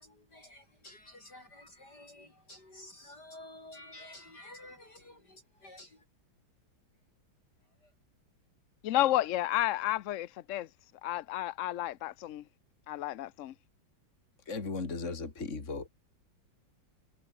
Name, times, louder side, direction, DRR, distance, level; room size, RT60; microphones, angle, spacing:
voice 1, 0.0-6.0 7.6-7.9, left 1 dB, 55° left, 6.8 m, -52 dB
voice 2, 8.8-10.7 11.0-12.4 12.9-13.5, left 14 dB, 80° left, 0.6 m, -31 dB
voice 3, 14.5-15.9, left 3 dB, 35° left, 3.2 m, -36 dB
omnidirectional pair, 2.1 m